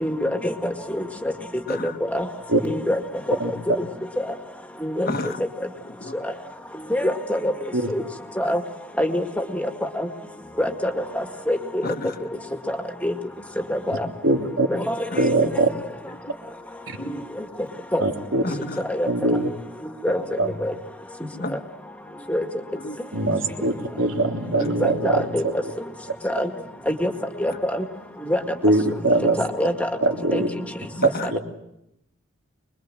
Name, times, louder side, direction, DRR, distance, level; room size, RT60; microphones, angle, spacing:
voice 1, 0.0-0.5 0.9-1.0 2.1-2.3 2.6-3.0 4.8-5.1 6.9-7.5 7.9-8.0 8.4-8.6 9.0-9.2 9.5-9.6 10.0-10.1 10.6-11.8 12.7-12.8 13.0-13.1 13.7-14.1 14.7-14.9 17.1-17.2 17.9-18.0 19.0-19.1 20.0-20.2 20.6-20.7 22.3-22.4 24.8-25.4 26.2-26.5 26.9-27.1 27.4-27.8 28.3-28.4 29.4-29.9 30.3-30.4, left 1 dB, 5° left, 5 dB, 2.0 m, -24 dB
voice 2, 3.4-3.8 7.7-7.9 14.2-14.7 15.1-15.7 18.0-18.4 19.0-19.5 20.4-20.5 23.1-25.3 25.6-25.7 28.6-29.4 30.0-30.5 31.3-31.4, right 2 dB, 90° right, 2 dB, 3.4 m, -22 dB
voice 3, 5.0-5.4 6.0-6.1 11.8-12.1 17.0-17.2 18.4-18.8 21.4-21.6 22.8-22.9 31.0-31.3, left 2 dB, 45° left, 7 dB, 1.6 m, -30 dB
25.0 x 22.5 x 7.7 m, 0.84 s
head